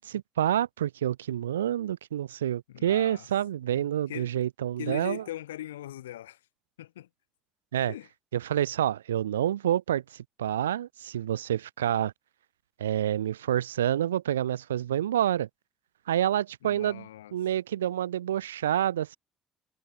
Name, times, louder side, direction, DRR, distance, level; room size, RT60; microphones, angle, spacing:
voice 1, 0.0-5.2 7.7-7.9 8.3-12.1 12.8-15.5 16.1-19.2, right 11 dB, 85° right, 0.9 m, -28 dB
voice 2, 2.7-3.3 3.7-4.3 4.8-6.4 6.8-7.1 7.8-8.1 16.6-17.3, left 13 dB, 85° left, 2.3 m, -40 dB
hypercardioid pair, 50°, 0 cm